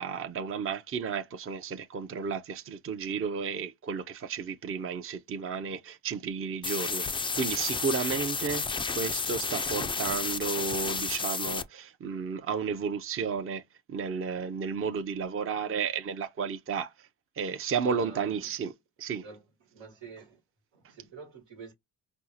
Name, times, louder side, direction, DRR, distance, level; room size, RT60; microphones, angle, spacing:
voice 1, 0.0-7.1 7.4-13.6 13.9-16.9 17.4-18.7 19.0-19.2, right 6 dB, 30° right, 0.6 m, -33 dB
sound 1, 6.6-11.6, left 4 dB, 15° left, 0.3 m, -31 dB
voice 2, 17.8-18.5 19.2-19.4 19.7-20.4 20.7-21.7, right 4 dB, 80° right, 1.3 m, -47 dB
4.4 x 2.0 x 2.7 m
hypercardioid pair, 50°, 42 cm